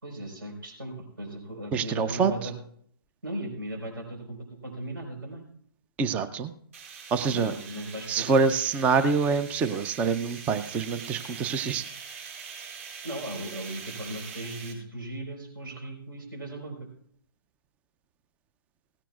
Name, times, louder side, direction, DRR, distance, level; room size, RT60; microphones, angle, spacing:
voice 1, 0.0-2.5 3.2-5.5 7.3-8.4 13.0-16.9, right 1 dB, 65° right, 3 dB, 4.4 m, -37 dB
voice 2, 1.7-2.5 6.0-6.5 7.1-7.5 8.1-11.8, right 5 dB, 10° right, 13 dB, 0.4 m, -26 dB
sound 1, 6.7-14.7, right 6 dB, 40° right, 4.5 m, -43 dB
17.5 x 16.0 x 2.4 m, 0.65 s
figure-of-eight pair, 135°, 12 cm